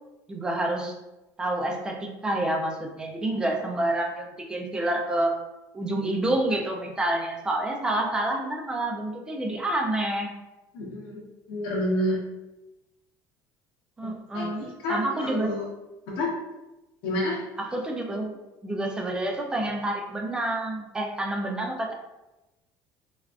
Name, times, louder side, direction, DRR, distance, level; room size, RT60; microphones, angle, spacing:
voice 1, 0.3-0.9 1.4-5.3 5.7-10.3 14.0-14.6 14.9-15.5 17.6-18.3 18.6-21.9, right 1 dB, 10° right, 1 dB, 0.3 m, -28 dB
voice 2, 10.7-11.2 11.5-12.2 14.3-15.6 16.1-16.3 17.0-17.4, left 1 dB, 80° left, -4 dB, 0.7 m, -29 dB
3.3 x 2.3 x 2.3 m, 1.0 s
cardioid pair, 170°, 8 cm